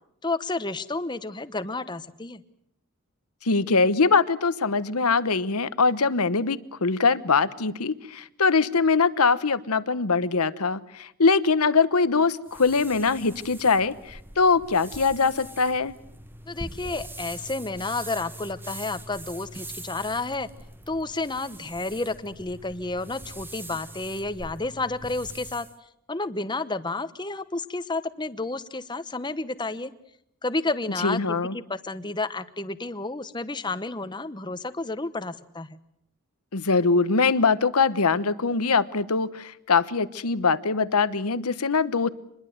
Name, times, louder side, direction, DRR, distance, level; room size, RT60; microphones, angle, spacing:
voice 1, 0.2-2.4 16.5-20.5 20.9-25.7 26.1-29.9 30.4-35.8, left 3 dB, 20° left, 13 dB, 1.0 m, -31 dB
voice 2, 3.4-15.9 31.0-31.6 36.5-42.1, left 4 dB, 85° left, 15 dB, 1.1 m, -22 dB
sound 1, 12.5-25.8, right 1 dB, 10° right, 1.0 m, -43 dB
26.0 x 21.5 x 7.9 m, 0.78 s
head